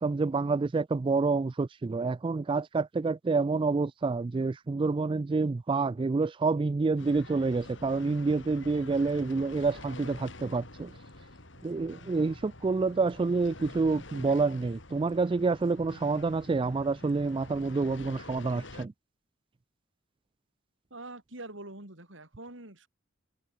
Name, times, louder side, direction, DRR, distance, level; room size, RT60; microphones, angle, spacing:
voice 1, 0.0-10.9 11.6-18.9, right 4 dB, 25° right, 0.3 m, -28 dB
sound 1, 7.0-18.9, left 2 dB, 65° left, 4.8 m, -48 dB
voice 2, 20.9-22.9, right 2 dB, 70° right, 5.2 m, -44 dB
head